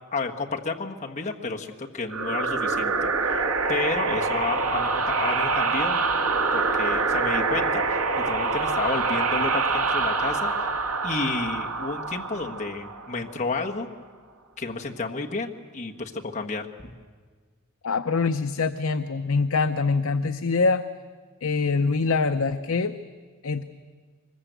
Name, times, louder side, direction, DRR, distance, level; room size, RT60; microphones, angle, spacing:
voice 1, 0.1-3.4 3.7-6.1 6.5-10.5 11.0-13.9 14.6-16.9, left 3 dB, 35° left, 1 dB, 1.4 m, -31 dB
sound 1, 2.1-13.4, right 4 dB, 85° right, 2.0 m, -25 dB
voice 2, 17.8-20.8 21.4-22.9 23.4-23.6, left 4 dB, 70° left, 9 dB, 0.6 m, -24 dB
24.0 x 21.0 x 8.1 m, 1.5 s
head